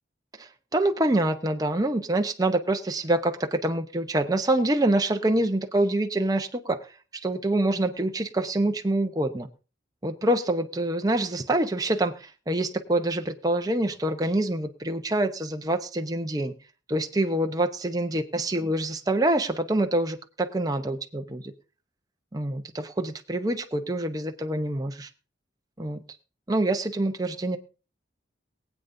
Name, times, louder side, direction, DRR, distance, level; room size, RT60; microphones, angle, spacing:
voice 1, 0.4-7.0 7.2-9.5 10.0-16.5 16.9-21.5 22.3-25.1 25.8-26.0 26.5-27.6, right 1 dB, 20° right, 5 dB, 0.7 m, -26 dB
22.5 x 8.1 x 2.6 m, 0.35 s
head